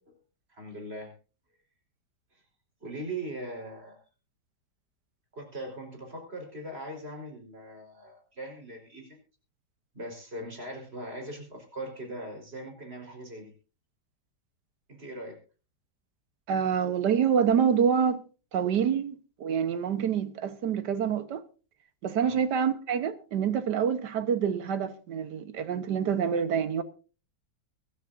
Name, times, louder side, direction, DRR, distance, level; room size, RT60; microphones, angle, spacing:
voice 1, 0.5-1.1 2.8-4.0 5.3-9.2 9.9-13.5 14.9-15.4 22.2-22.4, right 1 dB, 30° right, 4.5 m, -40 dB
voice 2, 16.5-18.2 18.5-21.4 22.0-26.8, right 7 dB, 70° right, 1.6 m, -27 dB
24.0 x 12.5 x 2.6 m
omnidirectional pair, 2.0 m